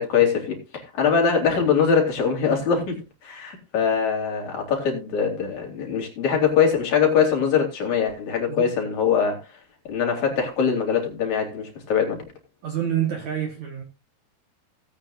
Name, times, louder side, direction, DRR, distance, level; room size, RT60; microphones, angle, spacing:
voice 1, 0.0-9.4 9.9-12.2, left 6 dB, 45° left, 4.3 m, -22 dB
voice 2, 12.6-13.8, right 10 dB, 55° right, 2.4 m, -27 dB
18.5 x 8.7 x 2.5 m
omnidirectional pair, 4.7 m